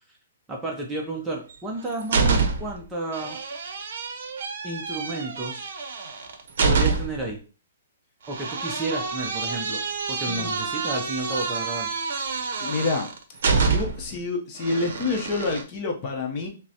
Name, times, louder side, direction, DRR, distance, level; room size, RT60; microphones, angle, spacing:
voice 1, 0.5-3.4 4.6-5.6 6.6-7.4 8.3-9.8 10.1-11.9, right 2 dB, 10° right, -1 dB, 0.5 m, -31 dB
sound 1, 1.5-2.8 3.1-7.3 8.3-14.1 14.6-15.6, right 4 dB, 60° right, 0.6 m, -27 dB
voice 2, 12.6-13.1 13.6-16.5, left 3 dB, 25° left, 1 dB, 0.7 m, -28 dB
5.8 x 2.0 x 2.8 m, 0.36 s
hypercardioid pair, 165°, 0 cm